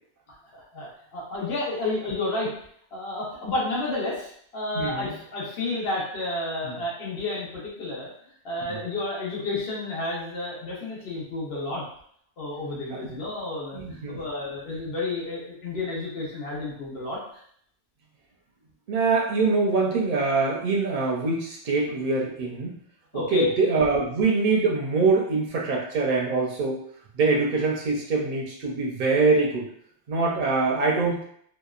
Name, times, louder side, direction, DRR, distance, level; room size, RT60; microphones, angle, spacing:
voice 1, 0.5-2.5 2.9-8.1 8.4-11.8 12.4-13.8 14.1-17.2 23.1-23.5, left 2 dB, 65° left, -5 dB, 1.0 m, -31 dB
voice 2, 4.7-5.1 8.7-8.8 12.9-13.1 13.7-14.2 18.9-22.7 23.1-26.8 27.1-29.7 30.1-31.2, right 3 dB, 60° right, -2 dB, 0.6 m, -24 dB
2.8 x 2.1 x 2.3 m, 0.65 s
omnidirectional pair, 1.1 m